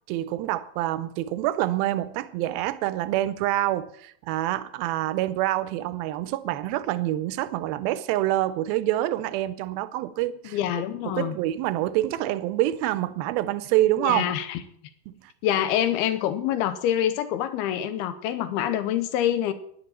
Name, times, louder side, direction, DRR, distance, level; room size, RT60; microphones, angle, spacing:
voice 1, 0.1-10.6 11.1-14.3 15.1-15.2, right 15 dB, 80° right, 2.4 m, -26 dB
voice 2, 10.4-11.4 14.0-14.6 15.4-19.5, left 11 dB, 80° left, 2.8 m, -26 dB
17.0 x 10.5 x 4.3 m
omnidirectional pair, 4.7 m